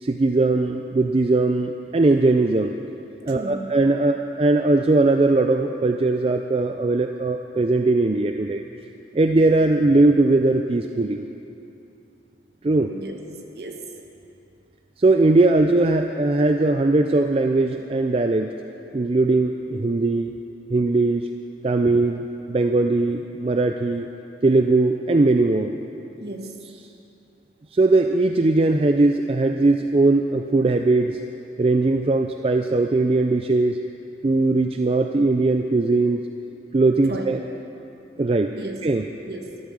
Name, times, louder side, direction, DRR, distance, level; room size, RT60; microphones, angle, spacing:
voice 1, 0.0-2.7 3.3-8.6 9.1-11.3 12.6-12.9 15.0-18.5 18.9-20.3 20.7-21.3 21.6-24.1 24.4-25.8 27.7-31.2 31.6-33.8 34.2-36.3 36.7-37.4 38.2-38.6 38.8-39.1, right 2 dB, 30° right, 5 dB, 0.4 m, -20 dB
voice 2, 3.3-3.8 12.9-13.2 13.5-13.9 26.2-26.6 37.1-37.3 38.6-38.8 39.2-39.6, right 2 dB, 60° right, 3 dB, 1.4 m, -34 dB
13.5 x 12.0 x 6.3 m, 2.8 s
head